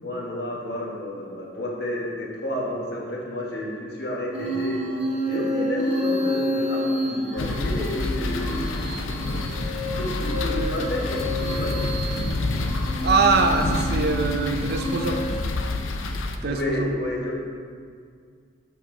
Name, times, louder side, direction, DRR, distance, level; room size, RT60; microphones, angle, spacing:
voice 1, 0.0-4.8 5.3-9.4 10.0-11.9 16.4-17.4, left 1 dB, 55° left, -2 dB, 1.2 m, -31 dB
sound 1, 4.3-15.4, equal, 30° right, 1.0 m, -29 dB
sound 2, 7.4-16.4, left 2 dB, 90° left, 0.5 m, -28 dB
voice 2, 13.0-15.2 16.4-16.9, right 4 dB, 50° right, 5 dB, 0.4 m, -23 dB
6.7 x 5.6 x 3.6 m, 2.1 s
head